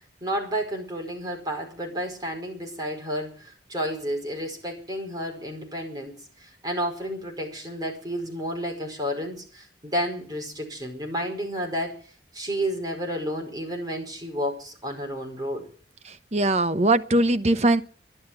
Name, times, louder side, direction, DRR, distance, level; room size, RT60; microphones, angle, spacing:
voice 1, 0.2-12.0 12.3-15.6, equal, 20° right, 5.1 m, -31 dB
voice 2, 16.3-17.8, right 2 dB, 35° right, 0.9 m, -20 dB
12.0 x 11.0 x 9.4 m
head